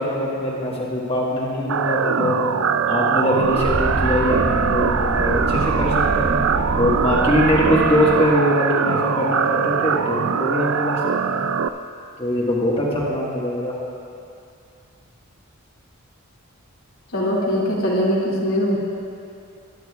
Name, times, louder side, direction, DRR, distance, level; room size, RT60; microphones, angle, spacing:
voice 1, 0.0-2.5 2.9-6.4 6.7-11.4 12.2-13.7, left 1 dB, 25° left, -6 dB, 1.6 m, -22 dB
sound 1, 1.7-11.7, right 7 dB, 70° right, 0.4 m, -22 dB
sound 2, 3.4-8.3, right 1 dB, 50° right, 1.0 m, -26 dB
voice 2, 17.1-18.8, equal, 85° left, -6 dB, 2.4 m, -21 dB
22.0 x 9.7 x 2.4 m, 2.5 s
head